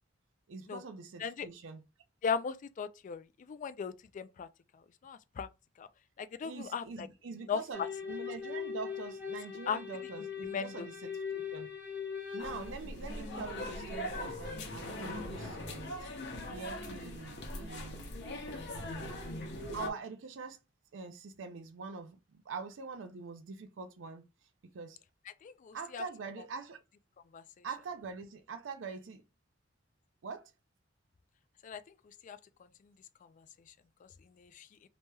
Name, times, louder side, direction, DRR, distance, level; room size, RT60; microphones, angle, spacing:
voice 1, 0.5-1.8 6.4-11.7 12.3-16.1 16.5-18.1 19.7-20.6 20.9-24.3 24.7-25.0 25.7-26.8 27.6-29.2 30.2-30.5, right 4 dB, 75° right, 0.4 m, -44 dB
voice 2, 2.2-3.2 3.5-4.5 5.0-5.5 5.8-5.9 6.2-7.1 7.5-7.6 9.7-9.8 10.5-10.9 25.4-26.0 27.3-27.4 31.6-31.8 32.2-32.4 34.4-34.7, left 6 dB, 40° left, 0.3 m, -37 dB
sound 1, 7.7-12.7, left 7 dB, 10° right, 0.9 m, -40 dB
sound 2, 12.4-19.9, left 1 dB, 65° left, 0.8 m, -41 dB
3.0 x 3.0 x 2.2 m
head